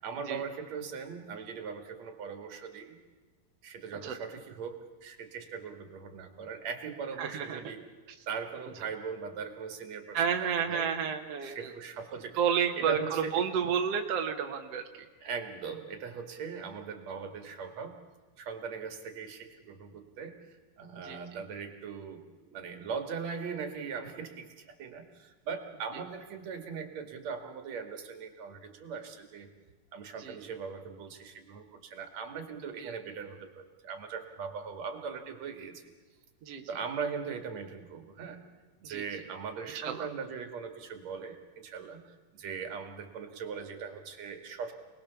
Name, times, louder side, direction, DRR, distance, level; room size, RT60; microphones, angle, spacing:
voice 1, 0.0-3.0 3.6-7.8 8.3-10.2 10.7-11.0 11.4-12.4 12.8-13.4 15.2-18.0 18.4-20.5 20.8-29.5 29.9-35.8 36.7-38.4 38.8-44.7, right 6 dB, 50° right, 6 dB, 2.8 m, -40 dB
voice 2, 7.2-7.6 10.1-11.7 12.3-15.1 21.0-21.4 30.2-30.4 32.8-32.9 36.4-36.6 38.8-39.0 39.7-40.1, right 7 dB, 65° right, 4 dB, 1.5 m, -31 dB
29.0 x 20.5 x 7.1 m, 1.4 s
omnidirectional pair, 4.7 m